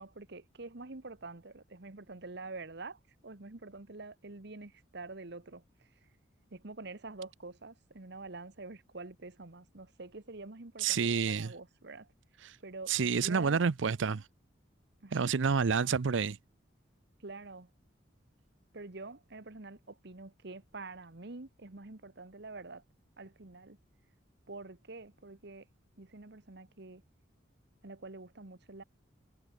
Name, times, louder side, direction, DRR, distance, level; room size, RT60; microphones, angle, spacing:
voice 1, 0.0-6.1 6.5-12.1 12.6-13.7 15.0-15.3 17.2-17.7 18.7-22.8 23.2-23.8 24.5-25.7 26.0-27.0 27.8-28.8, right 3 dB, 60° right, 1.4 m, -47 dB
voice 2, 10.8-11.5 12.4-12.6 12.9-14.3 15.1-16.4, right 5 dB, 80° right, 0.6 m, -29 dB
head